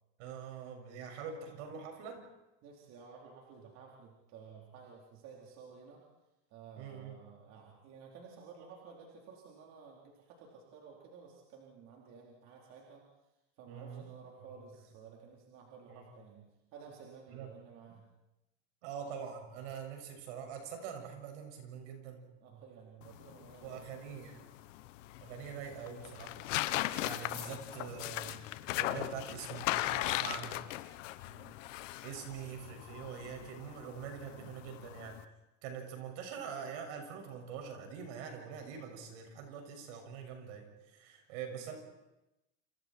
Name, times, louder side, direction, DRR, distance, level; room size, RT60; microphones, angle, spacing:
voice 1, 0.2-2.2 6.8-7.2 13.7-14.1 15.9-16.1 17.3-17.5 18.8-22.3 23.6-24.5 25.2-26.4 27.0-28.4 28.7-30.6 32.0-35.2 35.6-41.8, right 7 dB, 70° right, 4 dB, 6.6 m, -44 dB
voice 2, 2.6-6.0 6.5-13.0 13.6-18.1 22.4-23.9 31.2-31.6 41.5-41.6, right 6 dB, 50° right, -2 dB, 4.2 m, -54 dB
sound 1, 23.0-35.2, left 15 dB, 90° left, 1.2 m, -38 dB
28.5 x 28.5 x 4.6 m, 0.94 s
supercardioid pair, 160°, 36 cm